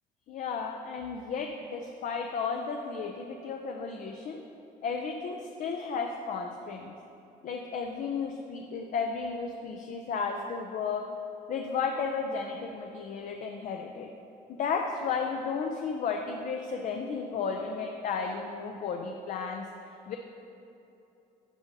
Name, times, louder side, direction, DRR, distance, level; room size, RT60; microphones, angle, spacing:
voice 1, 0.3-4.4 4.8-6.9 7.4-11.1 11.5-14.1 14.5-19.6 20.1-20.2, left 5 dB, 50° left, 3 dB, 0.5 m, -33 dB
12.0 x 5.2 x 2.7 m, 2.8 s
cardioid pair, 110°, 17 cm